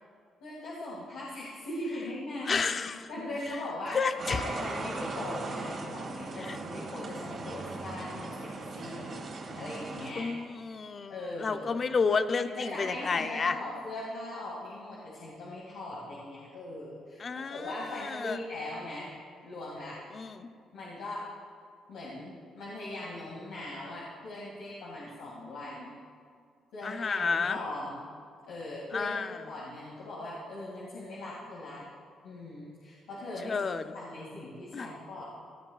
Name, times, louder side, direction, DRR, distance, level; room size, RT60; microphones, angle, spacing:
voice 1, 0.4-2.7 3.1-4.0 4.3-8.5 8.7-9.3 9.5-10.3 11.1-11.8 12.4-19.1 19.4-20.0 20.7-21.3 21.9-26.0 26.7-28.1 28.5-29.2 29.5-31.8 32.2-33.6 33.9-35.2, left 1 dB, 90° left, -7 dB, 2.2 m, -40 dB
voice 2, 2.5-3.0 3.9-4.4 6.4-6.6 10.2-13.6 17.2-18.4 20.1-20.5 26.8-27.6 28.9-29.4 33.4-33.8 34.7-34.9, left 5 dB, 40° left, 10 dB, 0.6 m, -31 dB
sound 1, 4.2-10.1, right 3 dB, 50° right, 2.2 m, -38 dB
17.0 x 12.5 x 2.4 m, 2.2 s
cardioid pair, 90°, 0 cm